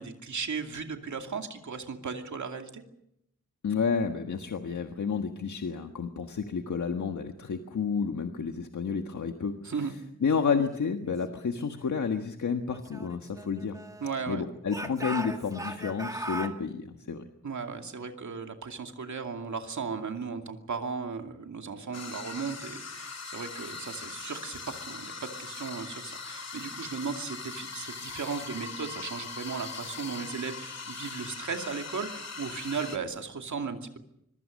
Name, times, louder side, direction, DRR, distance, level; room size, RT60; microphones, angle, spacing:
voice 1, 0.0-2.8 9.6-9.9 14.0-14.4 17.4-34.0, right 5 dB, 85° right, 4 dB, 2.6 m, -36 dB
voice 2, 3.6-9.7 10.2-13.8 14.3-17.2, left 5 dB, 90° left, 5 dB, 1.6 m, -30 dB
Speech / Shout, 12.7-14.2 14.7-16.6, right 1 dB, 10° right, 2.1 m, -38 dB
sound 1, 21.9-33.0, left 4 dB, 65° left, 2.4 m, -41 dB
25.5 x 23.5 x 6.5 m, 0.76 s
wide cardioid pair, 115°, 29 cm